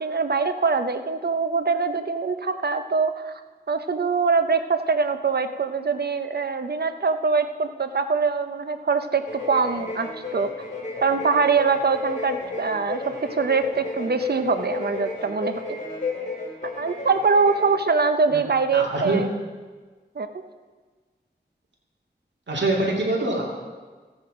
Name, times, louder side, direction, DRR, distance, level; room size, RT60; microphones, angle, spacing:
voice 1, 0.0-3.3 3.7-10.5 11.0-13.0 13.3-15.8 16.8-19.3 20.2-20.3, right 4 dB, 65° right, 9 dB, 0.8 m, -23 dB
sound 1, 9.2-17.8, left 3 dB, 45° left, 4.8 m, -33 dB
voice 2, 18.7-19.2 22.5-23.4, right 2 dB, 80° right, -2 dB, 2.6 m, -24 dB
14.5 x 8.8 x 5.0 m, 1.4 s
wide cardioid pair, 60°, 18 cm